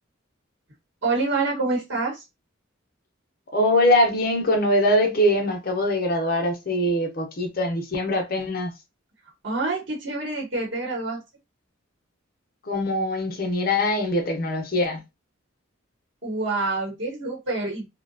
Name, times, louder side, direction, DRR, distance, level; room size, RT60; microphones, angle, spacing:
voice 1, 1.0-2.2 9.4-11.2 16.2-17.8, right 3 dB, 55° right, 1.0 m, -27 dB
voice 2, 3.5-8.7 12.7-15.0, left 1 dB, 45° left, 0.6 m, -22 dB
2.7 x 2.2 x 2.6 m
head